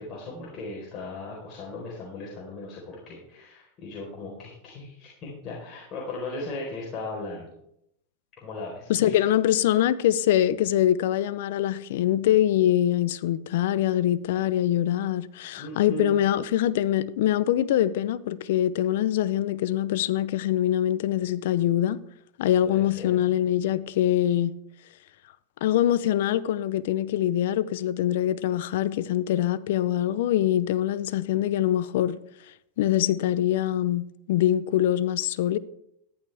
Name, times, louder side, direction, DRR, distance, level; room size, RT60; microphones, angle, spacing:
voice 1, 0.0-7.5 8.4-9.2 15.5-16.1 22.6-23.2, left 2 dB, 40° left, 4.3 m, -37 dB
voice 2, 8.9-22.0 22.4-24.5 25.6-32.2 32.8-35.6, left 12 dB, 75° left, 0.6 m, -24 dB
14.0 x 11.0 x 3.5 m
hypercardioid pair, 110°, 0 cm